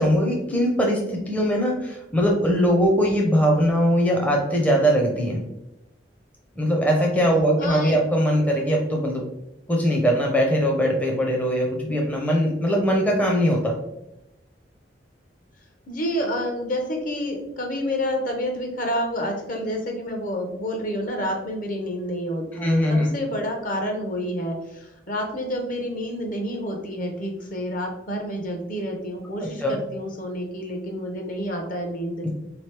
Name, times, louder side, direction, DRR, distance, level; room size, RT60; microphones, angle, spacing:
voice 1, 0.0-5.4 6.6-9.2 9.7-13.7 22.5-23.1 29.6-29.7 32.2-32.3, equal, 10° left, -1 dB, 0.5 m, -21 dB
voice 2, 7.6-8.0 15.9-32.3, equal, 50° left, 2 dB, 0.8 m, -29 dB
3.7 x 3.0 x 3.3 m, 0.88 s
head